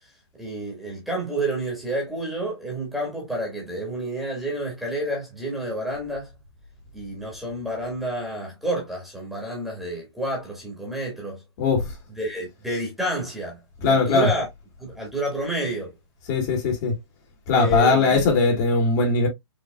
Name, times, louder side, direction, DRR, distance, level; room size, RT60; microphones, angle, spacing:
voice 1, 0.4-6.3 6.9-11.4 12.1-14.5 14.8-15.9 17.5-18.3, right 1 dB, ahead, 1.7 m, -29 dB
voice 2, 13.8-14.3 16.3-16.9 17.5-19.3, left 3 dB, 35° left, 1.9 m, -20 dB
5.2 x 3.2 x 2.2 m
hypercardioid pair, 150°, 15 cm